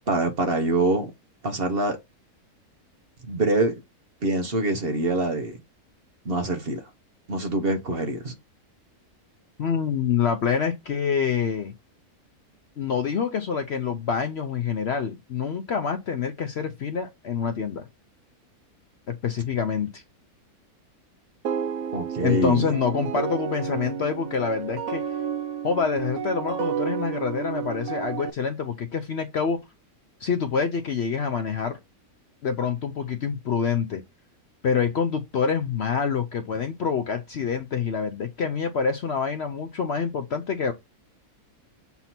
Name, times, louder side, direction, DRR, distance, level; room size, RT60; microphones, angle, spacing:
voice 1, 0.1-1.1 1.4-2.0 3.3-3.7 4.2-5.6 6.2-6.8 7.3-8.3 21.9-22.7, right 2 dB, 45° right, 1.1 m, -24 dB
voice 2, 9.6-11.7 12.8-17.8 19.1-20.0 22.2-25.0 25.6-29.6 30.2-31.8 32.4-34.0 34.6-40.7, left 6 dB, 60° left, 0.8 m, -26 dB
sound 1, 21.4-28.3, right 8 dB, 65° right, 1.0 m, -31 dB
7.0 x 2.8 x 5.8 m
omnidirectional pair, 1.6 m